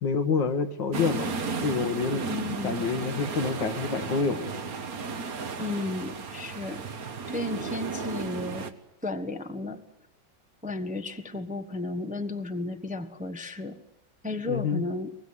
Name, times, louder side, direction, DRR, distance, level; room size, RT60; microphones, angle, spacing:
voice 1, 0.0-2.2 2.6-4.5 14.5-14.8, left 5 dB, 75° left, 8 dB, 2.2 m, -28 dB
sound 1, 0.9-8.7, right 4 dB, 50° right, 1.8 m, -34 dB
voice 2, 2.3-2.9 5.6-6.8 7.3-8.7 9.0-9.8 10.6-13.8 14.2-15.1, left 2 dB, 5° right, 8 dB, 0.9 m, -33 dB
24.0 x 20.0 x 9.8 m, 0.83 s
omnidirectional pair, 2.0 m